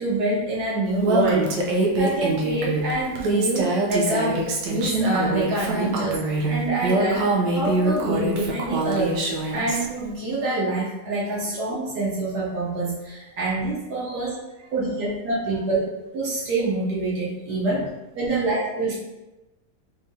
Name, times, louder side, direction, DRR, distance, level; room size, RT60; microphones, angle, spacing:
voice 1, 0.0-7.3 7.5-14.4 14.7-15.8 16.1-17.8 18.1-19.0, right 2 dB, 70° right, -6 dB, 1.4 m, -26 dB
Female speech woman speaking, 1.0-9.9, right 2 dB, 90° right, 1.3 m, -24 dB
voice 2, 14.0-14.7 16.4-16.5 17.5-17.9 18.3-18.5, left 2 dB, 50° right, -5 dB, 1.4 m, -46 dB
3.9 x 3.7 x 2.7 m, 1.0 s
omnidirectional pair, 1.8 m